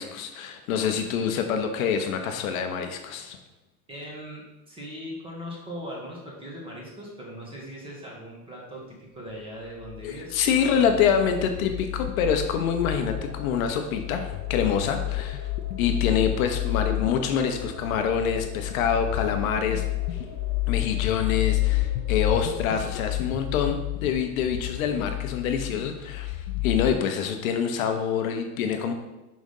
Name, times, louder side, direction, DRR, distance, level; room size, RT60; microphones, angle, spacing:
voice 1, 0.0-3.4 10.0-15.4 15.8-19.8 20.7-28.9, left 7 dB, 65° left, 5 dB, 0.8 m, -26 dB
voice 2, 3.9-11.2, equal, 10° right, -3 dB, 1.3 m, -40 dB
sound 1, 9.8-26.9, left 18 dB, 80° left, 0.5 m, -30 dB
sound 2, 12.9-22.9, right 2 dB, 30° right, 1.0 m, -46 dB
5.2 x 3.7 x 5.3 m, 1.0 s
supercardioid pair, 150°, 45 cm